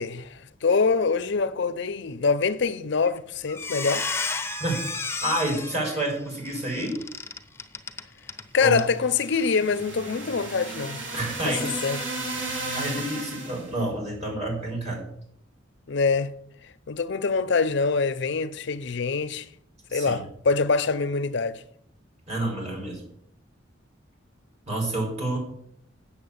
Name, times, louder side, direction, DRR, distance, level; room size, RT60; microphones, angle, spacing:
voice 1, 0.0-4.1 8.5-11.0 11.4-12.0 15.9-16.3 16.9-19.5 19.9-21.6, left 4 dB, 65° left, 0.6 m, -25 dB
Squeak, 2.9-3.2 3.5-8.4 8.7-8.9 9.3-9.5, left 4 dB, 15° left, 0.7 m, -33 dB
voice 2, 5.2-7.0 8.6-8.8 11.1-11.7 12.7-15.0 19.9-20.2 22.3-23.0 24.7-25.4, right 1 dB, 35° right, 4.9 m, -29 dB
sound 1, 8.8-13.7, right 2 dB, 80° right, 3.1 m, -34 dB
8.0 x 7.1 x 8.6 m
head